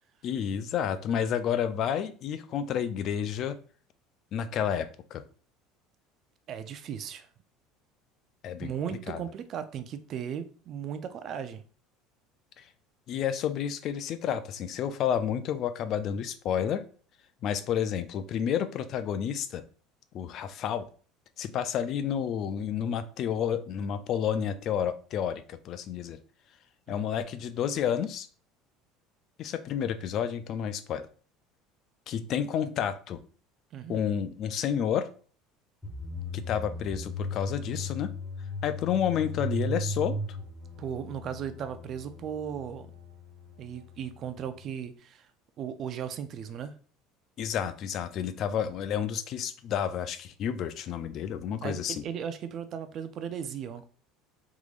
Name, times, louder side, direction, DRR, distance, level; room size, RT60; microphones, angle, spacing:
voice 1, 0.2-3.6 4.3-5.2 8.4-9.2 12.6-12.7 13.1-16.8 17.4-19.6 20.1-20.9 21.4-26.2 26.9-28.3 29.4-31.1 32.1-33.2 33.9-35.1 36.3-38.1 38.6-40.2 47.4-52.0, left 8 dB, 50° left, 0.4 m, -30 dB
voice 2, 6.5-7.3 8.6-11.6 26.9-27.0 33.7-34.0 40.8-42.9 43.6-45.3 45.6-46.7 51.6-53.9, right 8 dB, 50° right, 0.4 m, -36 dB
sound 1, 35.8-44.7, left 1 dB, 5° left, 1.4 m, -37 dB
3.6 x 3.1 x 2.4 m
supercardioid pair, 105°, 0 cm